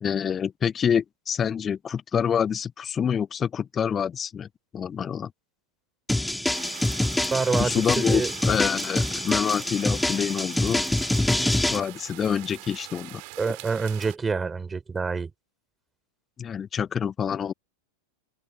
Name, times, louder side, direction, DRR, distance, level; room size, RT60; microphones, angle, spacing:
voice 1, 0.0-4.5 4.7-5.3 7.6-10.8 11.7-13.2 16.4-17.5, left 7 dB, 20° left, 0.9 m, -27 dB
sound 1, 6.1-11.8, left 1 dB, 5° left, 2.9 m, -25 dB
sound 2, 6.5-14.2, right 40 dB or more, 45° right, 4.6 m, -42 dB
voice 2, 7.3-8.3 13.4-15.3, right 4 dB, 15° right, 4.5 m, -27 dB
figure-of-eight pair, 90°, 0 cm